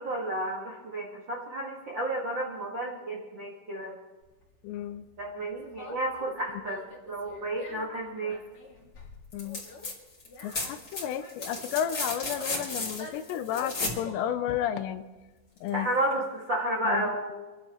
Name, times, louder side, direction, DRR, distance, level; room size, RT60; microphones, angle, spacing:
voice 1, 0.0-3.9 5.2-8.4 15.7-17.3, right 1 dB, 75° right, -2 dB, 1.0 m, -32 dB
Conversation, 4.2-16.1, left 3 dB, 45° left, 3.2 m, -48 dB
voice 2, 4.6-5.0 9.3-9.6 10.4-15.1 15.6-15.9 16.9-17.0, left 10 dB, 80° left, 10 dB, 2.7 m, -32 dB
sound 1, 9.3-9.9 10.2-14.0 15.7-15.8, left 2 dB, 25° left, 2.4 m, -34 dB
28.5 x 11.5 x 3.1 m, 1.2 s
omnidirectional pair, 5.3 m